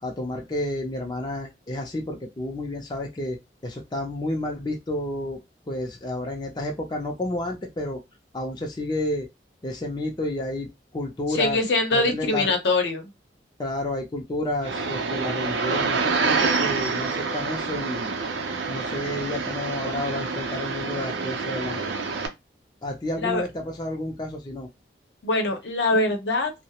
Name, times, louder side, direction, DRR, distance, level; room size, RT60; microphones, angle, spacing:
voice 1, 0.0-3.4 3.6-5.4 5.7-8.0 8.3-9.3 9.6-11.6 11.9-12.5 13.6-18.1 18.7-21.8 22.8-24.7, left 1 dB, 25° left, 0.4 m, -30 dB
voice 2, 11.3-13.1 23.2-23.5 25.2-26.5, left 2 dB, 75° left, 0.7 m, -23 dB
sound 1, 14.6-22.3, right 4 dB, 85° right, 0.5 m, -27 dB
2.3 x 2.0 x 2.8 m
head